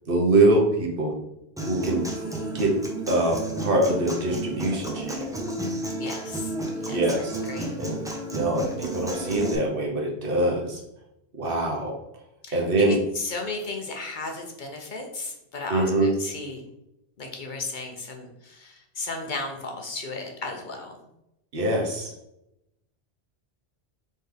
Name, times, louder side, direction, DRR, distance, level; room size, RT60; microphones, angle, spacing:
voice 1, 0.1-1.1 1.7-2.1 2.5-2.8 3.1-5.2 6.9-7.4 7.8-8.0 8.3-10.8 11.4-11.9 12.5-13.0 15.7-16.1 21.5-22.1, right 2 dB, 60° right, -1 dB, 1.2 m, -23 dB
Human voice / Acoustic guitar, 1.6-9.5, right 1 dB, 5° right, 0.4 m, -32 dB
voice 2, 2.0-2.6 6.0-7.7 12.4-16.6 17.2-20.9, left 3 dB, 55° left, 2 dB, 0.8 m, -35 dB
4.3 x 3.7 x 3.3 m, 0.86 s
omnidirectional pair, 1.1 m